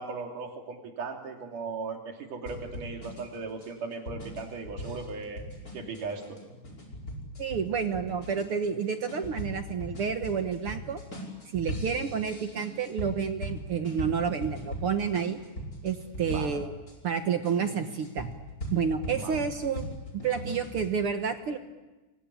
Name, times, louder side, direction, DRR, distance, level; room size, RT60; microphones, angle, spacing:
voice 1, 0.0-5.4 5.7-6.4 16.2-16.7 19.1-19.3, right 4 dB, 90° right, 2 dB, 4.4 m, -38 dB
sound 1, 2.5-16.9 17.4-20.9, equal, 25° left, 5.7 m, -39 dB
voice 2, 7.4-11.0 11.5-15.4 15.8-16.7 17.0-18.3 18.7-21.6, right 6 dB, 55° right, 7 dB, 1.7 m, -30 dB
28.5 x 23.5 x 8.5 m, 1.1 s
omnidirectional pair, 3.6 m